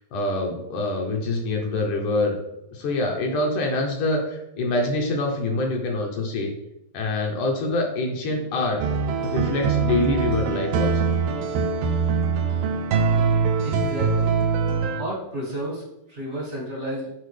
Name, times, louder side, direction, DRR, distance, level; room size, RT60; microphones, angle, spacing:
voice 1, 0.0-2.4 2.7-6.5 6.9-8.8 9.2-10.9, left 2 dB, 70° left, 1 dB, 2.1 m, -25 dB
sound 1, 8.8-15.0, right 5 dB, 85° right, 2.5 m, -23 dB
voice 2, 13.6-14.3 14.9-15.8 16.1-17.1, right 1 dB, 40° right, -5 dB, 1.0 m, -31 dB
10.5 x 4.6 x 3.3 m, 0.90 s
omnidirectional pair, 4.2 m